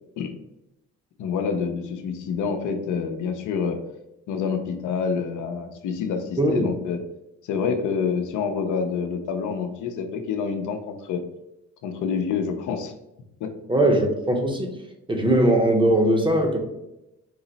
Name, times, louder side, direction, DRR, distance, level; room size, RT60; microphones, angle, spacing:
voice 1, 1.2-3.8 4.3-7.0 7.4-11.2 11.8-12.9 13.4-13.5, left 6 dB, 80° left, 5 dB, 0.6 m, -27 dB
voice 2, 6.4-6.7 13.7-14.7 15.1-16.6, right 1 dB, 15° right, 3 dB, 0.7 m, -20 dB
4.6 x 2.0 x 3.9 m, 0.90 s
cardioid pair, 90°, 30 cm